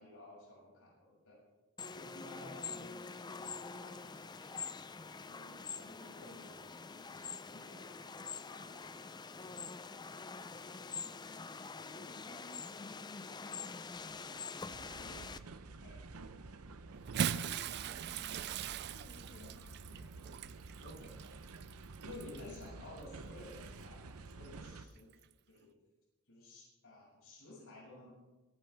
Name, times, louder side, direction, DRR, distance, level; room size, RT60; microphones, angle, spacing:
voice 1, 0.0-1.4 1.9-4.8 5.2-9.6 14.9-15.2 15.8-16.0 19.3-19.5 20.8-21.2 22.0-25.1 25.5-25.7 26.3-28.1, left 2 dB, 65° left, -5 dB, 6.2 m, -54 dB
sound 1, 1.8-15.4, left 5 dB, 20° left, 0.4 m, -46 dB
voice 2, 10.8-14.4 17.3-20.6, left 1 dB, 35° left, 2 dB, 1.2 m, -59 dB
sound 2, 14.7-24.9, right 3 dB, 70° right, 0.8 m, -50 dB
Bathtub (filling or washing) / Splash splatter, 16.9-22.6 23.5-23.7 25.1-25.2, right 8 dB, 50° right, 0.4 m, -40 dB
23.5 x 10.5 x 3.4 m, 1.1 s
head